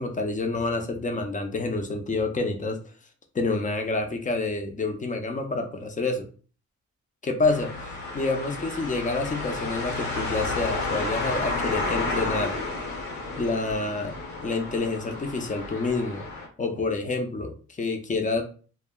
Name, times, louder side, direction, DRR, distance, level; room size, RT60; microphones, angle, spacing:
voice 1, 0.0-2.8 3.3-6.3 7.2-7.7 8.1-12.6 13.3-14.1 14.4-16.3 16.6-18.4, left 3 dB, 25° left, 5 dB, 0.6 m, -28 dB
sound 1, 7.4-16.5, left 3 dB, 70° left, 1.0 m, -31 dB
2.1 x 2.1 x 3.6 m, 0.39 s
cardioid pair, 80°, 30 cm